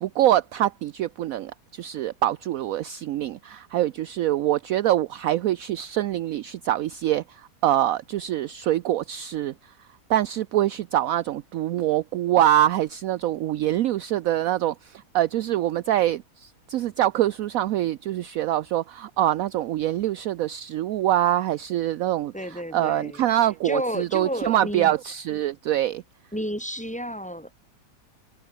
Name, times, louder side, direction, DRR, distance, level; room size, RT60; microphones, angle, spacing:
voice 1, 0.0-9.5 10.1-26.0, right 12 dB, 70° right, 0.9 m, -24 dB
voice 2, 22.3-23.3 23.6-24.9 26.3-27.5, equal, 5° left, 2.8 m, -31 dB
omnidirectional pair, 1.8 m